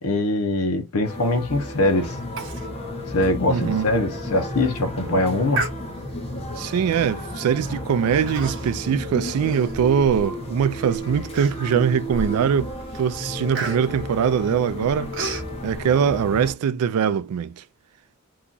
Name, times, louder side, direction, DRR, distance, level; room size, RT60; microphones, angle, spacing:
voice 1, 0.0-2.2 3.1-5.6, left 2 dB, 80° left, 0.7 m, -22 dB
sound 1, 1.0-16.5, equal, 25° left, 0.9 m, -33 dB
sound 2, 2.0-9.6, left 1 dB, 15° right, 0.6 m, -38 dB
Human voice, 2.4-2.7 3.0-3.1 3.6-3.7 4.3-4.5 5.5-6.2 7.0-7.2 8.3-8.9 9.2-10.3 10.8-10.9 11.3-11.9 12.4-12.6 12.9-15.5, right 3 dB, 60° right, 0.9 m, -33 dB
voice 2, 3.5-3.9 6.6-15.1 15.6-17.6, right 7 dB, 90° right, 0.3 m, -22 dB
2.8 x 2.3 x 3.8 m
head